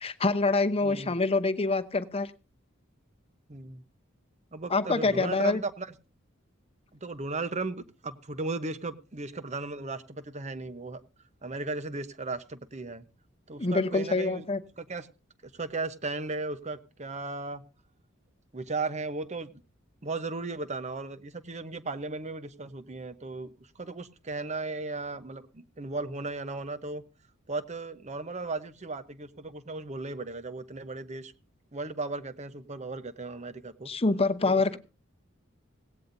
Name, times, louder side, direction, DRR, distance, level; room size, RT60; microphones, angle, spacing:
voice 1, 0.0-2.3 4.7-5.6 13.6-14.6 33.9-34.8, left 3 dB, 30° left, 10 dB, 0.8 m, -26 dB
voice 2, 0.8-1.2 3.5-3.8 4.5-5.9 6.9-11.0 11.4-13.0 13.5-14.5 14.8-15.1 15.4-17.6 18.5-19.5 20.0-27.0 27.5-31.3 31.7-33.9 34.4-34.8, right 3 dB, 35° right, 12 dB, 1.0 m, -36 dB
17.0 x 17.0 x 2.7 m, 0.32 s
head